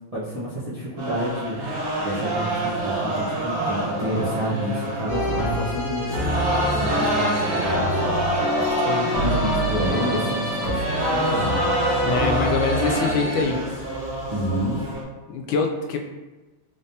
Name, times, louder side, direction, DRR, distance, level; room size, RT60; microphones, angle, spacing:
voice 1, 0.1-1.6 2.0-8.2 9.1-11.7 14.3-14.8, equal, 60° right, -10 dB, 0.3 m, -29 dB
sound 1, 1.0-15.0, right 1 dB, 85° right, 1.7 m, -27 dB
sound 2, 5.1-13.4, equal, 40° left, 1.5 m, -26 dB
sound 3, 6.0-14.9, left 1 dB, 65° left, 1.4 m, -42 dB
voice 2, 12.0-13.6 15.3-16.0, left 4 dB, 85° left, 3 dB, 1.4 m, -24 dB
3.9 x 3.4 x 2.7 m, 1.1 s
omnidirectional pair, 2.1 m